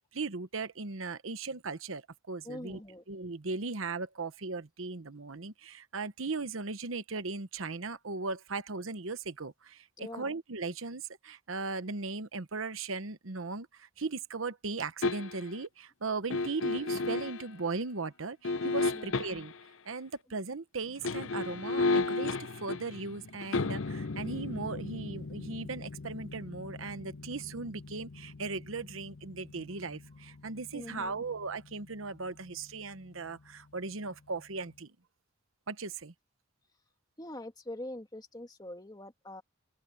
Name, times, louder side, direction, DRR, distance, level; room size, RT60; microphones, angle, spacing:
voice 1, 0.1-2.8 3.1-19.5 19.8-34.9 35.7-36.1, right 3 dB, 80° right, 1.1 m, -38 dB
voice 2, 2.4-3.0 10.0-10.3 18.9-19.2 30.7-31.2 37.2-39.4, left 1 dB, 20° left, 2.5 m, -44 dB
sound 1, 15.0-15.6 16.3-17.5 18.4-19.6 20.9-31.8 32.1-32.3, left 3 dB, 70° left, 0.7 m, -35 dB
open air
head